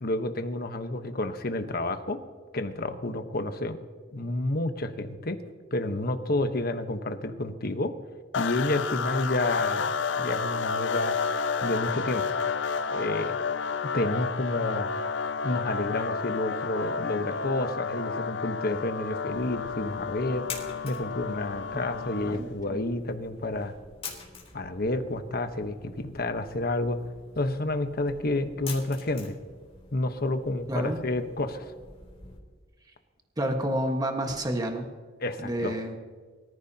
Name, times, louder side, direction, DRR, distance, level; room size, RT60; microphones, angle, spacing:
voice 1, 0.0-2.2 2.5-3.8 4.1-5.4 5.7-7.9 8.3-11.2 11.6-12.2 12.9-13.4 13.9-14.9 15.4-20.4 20.8-23.7 24.5-27.0 27.4-29.4 29.9-31.7 35.2-35.8, left 2 dB, 55° left, 7 dB, 1.2 m, -30 dB
sound 1, 8.3-22.5, left 5 dB, 70° left, 0.5 m, -31 dB
sound 2, 19.3-32.4, left 5 dB, 35° left, 3.5 m, -46 dB
voice 2, 22.3-22.8 30.7-31.0 33.4-34.8 35.4-36.0, right 1 dB, 20° right, 3 dB, 1.5 m, -29 dB
24.0 x 14.5 x 2.9 m, 1.5 s
head